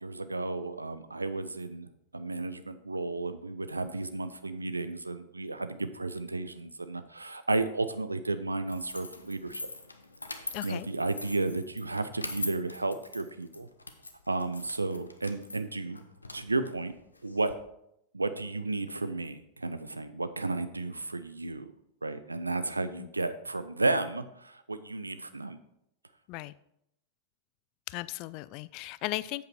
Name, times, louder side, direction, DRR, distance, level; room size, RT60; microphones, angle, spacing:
voice 1, 0.0-9.6 10.3-13.7 14.3-16.0 16.3-17.0 17.2-17.5 18.1-21.7 22.0-25.6, right 2 dB, 80° right, 11 dB, 0.5 m, -33 dB
sound 1, 8.7-17.5, left 2 dB, 80° left, 0.7 m, -43 dB
voice 2, 10.5-10.9 23.0-23.1 26.3-26.5 27.9-29.5, left 18 dB, 45° left, 17 dB, 0.3 m, -36 dB
7.8 x 6.8 x 4.4 m, 0.80 s
figure-of-eight pair, 90°, 0 cm